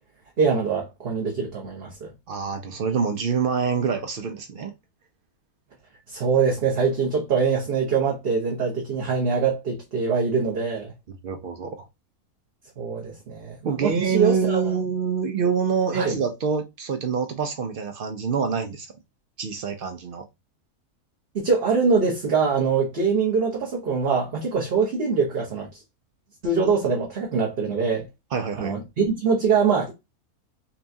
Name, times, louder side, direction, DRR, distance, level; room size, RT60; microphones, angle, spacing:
voice 1, 0.4-2.1 6.1-10.9 12.8-14.6 15.9-16.2 21.3-25.7 26.4-28.1 28.6-29.9, right 5 dB, 45° right, 1.0 m, -23 dB
voice 2, 2.3-4.7 11.2-11.9 13.6-18.9 19.4-20.2 28.3-28.7, right 6 dB, 90° right, 0.4 m, -26 dB
5.5 x 2.3 x 2.6 m
omnidirectional pair, 1.6 m